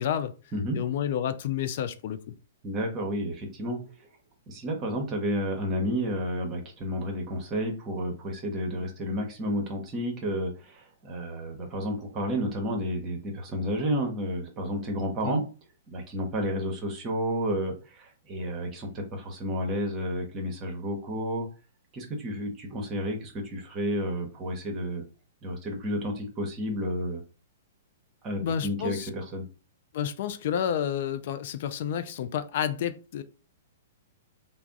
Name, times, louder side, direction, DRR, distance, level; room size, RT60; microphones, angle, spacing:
voice 1, 0.0-0.3 0.7-2.3 15.2-15.4 28.4-29.1 29.9-33.2, left 9 dB, 45° left, 0.4 m, -30 dB
voice 2, 2.6-4.1 4.5-15.4 15.9-21.5 21.9-25.0 25.4-27.2 28.2-29.5, equal, 25° right, 0.8 m, -31 dB
3.3 x 2.0 x 3.7 m
figure-of-eight pair, 110°, 0 cm